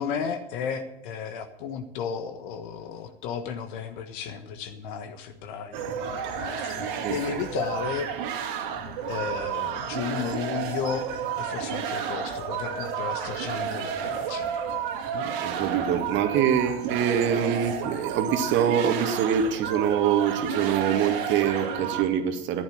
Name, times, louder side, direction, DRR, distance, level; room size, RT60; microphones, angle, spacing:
voice 1, 0.0-5.9 6.4-8.1 9.1-11.1 11.4-14.5 15.1-15.3, left 7 dB, 50° left, 8 dB, 1.5 m, -33 dB
sound 1, 5.7-22.0, right 7 dB, 50° right, 2.5 m, -31 dB
voice 2, 15.4-22.6, right 8 dB, 35° right, 6 dB, 2.0 m, -24 dB
14.0 x 11.5 x 6.4 m, 0.85 s
figure-of-eight pair, 100°, 33 cm